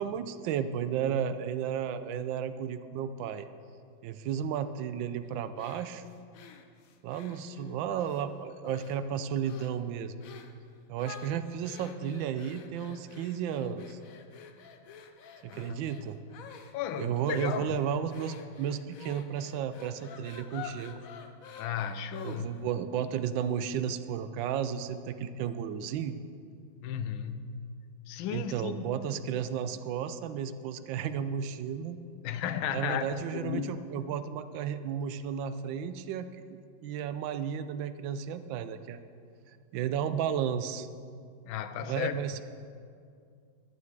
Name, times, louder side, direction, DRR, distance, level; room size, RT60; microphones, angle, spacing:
voice 1, 0.0-3.5 4.0-6.0 7.0-10.1 10.9-14.0 15.4-16.2 17.0-21.0 22.2-26.1 28.3-32.0 32.7-39.0 39.7-40.9 41.8-42.4, right 8 dB, 80° right, 1.3 m, -33 dB
sound 1, 5.6-8.2 8.6-9.1 9.4-9.8 10.2-10.6 11.0-22.7, left 6 dB, 65° left, 0.9 m, -49 dB
voice 2, 15.5-15.8 16.7-17.8 21.6-22.5 26.8-27.6 28.1-29.0 32.2-33.8 41.5-42.1, left 8 dB, 90° left, 1.4 m, -34 dB
11.5 x 10.5 x 4.7 m
omnidirectional pair, 2.1 m